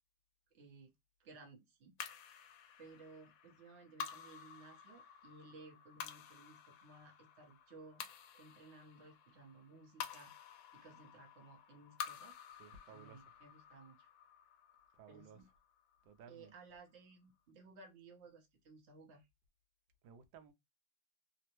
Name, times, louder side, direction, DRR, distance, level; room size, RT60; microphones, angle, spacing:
voice 1, 0.5-0.9 1.2-1.9 2.4-8.0 8.3-12.4 12.9-14.1 15.1-15.5 16.3-19.3, right 3 dB, 50° right, 0.8 m, -58 dB
sound 1, 2.0-16.5, left 8 dB, 75° left, 1.3 m, -51 dB
voice 2, 12.6-13.3 14.9-15.4 16.0-16.5 20.0-20.5, right 6 dB, 75° right, 1.3 m, -57 dB
3.5 x 2.0 x 2.9 m
omnidirectional pair, 2.2 m